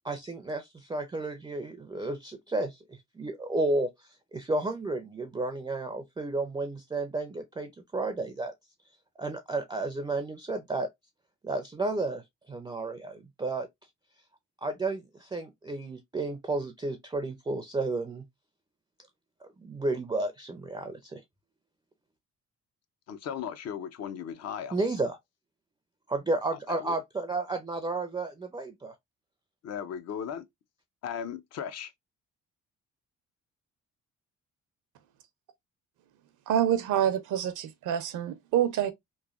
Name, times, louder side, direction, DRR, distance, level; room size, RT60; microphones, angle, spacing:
voice 1, 0.0-3.9 4.3-8.5 9.2-10.9 11.4-13.7 14.6-18.2 19.4-21.2 24.7-25.2 26.1-28.9, right 2 dB, 15° right, 0.4 m, -32 dB
voice 2, 23.1-24.8 26.7-27.0 29.6-30.4 31.0-31.9, left 8 dB, 60° left, 0.5 m, -36 dB
voice 3, 36.5-38.9, right 10 dB, 80° right, 0.6 m, -27 dB
3.1 x 2.2 x 2.3 m
cardioid pair, 90°, 30 cm